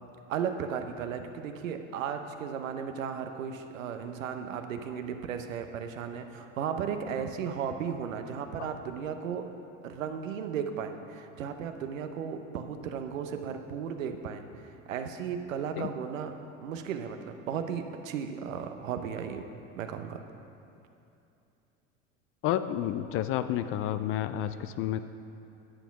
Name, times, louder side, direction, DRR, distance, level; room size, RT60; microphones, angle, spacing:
voice 1, 0.3-9.5 9.8-14.4 14.9-16.4 16.6-19.4 19.8-20.2, right 7 dB, 75° right, 7 dB, 0.9 m, -35 dB
voice 2, 22.4-25.0, left 11 dB, 35° left, 11 dB, 0.4 m, -30 dB
11.0 x 7.1 x 5.9 m, 2.7 s
figure-of-eight pair, 75°, 40 cm